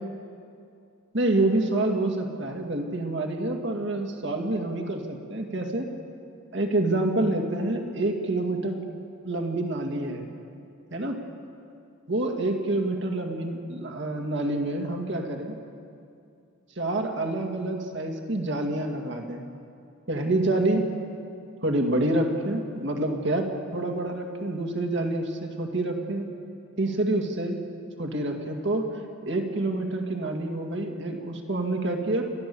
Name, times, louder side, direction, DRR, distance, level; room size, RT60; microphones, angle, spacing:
voice 1, 1.1-5.9 6.5-8.8 9.2-10.3 10.9-11.2 12.1-15.6 16.8-19.4 20.1-20.9 21.6-26.3 26.8-27.6 28.0-28.9 29.3-32.2, right 2 dB, 55° right, 3 dB, 2.3 m, -27 dB
30.0 x 13.0 x 7.1 m, 2.5 s
head